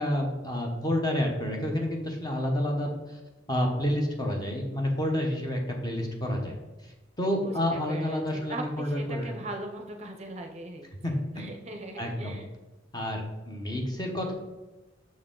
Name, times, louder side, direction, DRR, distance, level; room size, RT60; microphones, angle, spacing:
voice 1, 0.0-3.2 3.5-6.6 6.8-9.3 11.0-11.5 12.0-12.4 12.9-14.3, left 1 dB, 20° left, 1 dB, 0.9 m, -29 dB
voice 2, 7.4-10.9 11.3-12.5, right 2 dB, 35° right, 4 dB, 0.6 m, -40 dB
6.2 x 4.6 x 3.8 m, 1.1 s
head